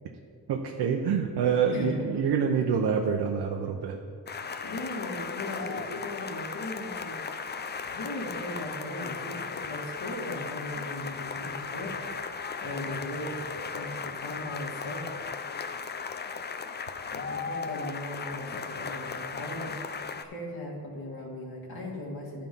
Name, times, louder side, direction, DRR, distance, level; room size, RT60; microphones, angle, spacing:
voice 1, 0.5-4.0, right 6 dB, 90° right, 3 dB, 0.7 m, -26 dB
voice 2, 1.7-2.2 4.6-7.2 7.9-13.3 13.7-15.1 17.1-19.7 20.2-22.5, left 1 dB, 65° left, -3 dB, 2.2 m, -38 dB
sound 1, 4.3-20.2, left 5 dB, 30° left, 0.4 m, -36 dB
13.0 x 4.4 x 5.3 m, 2.4 s
cardioid pair, 110°, 39 cm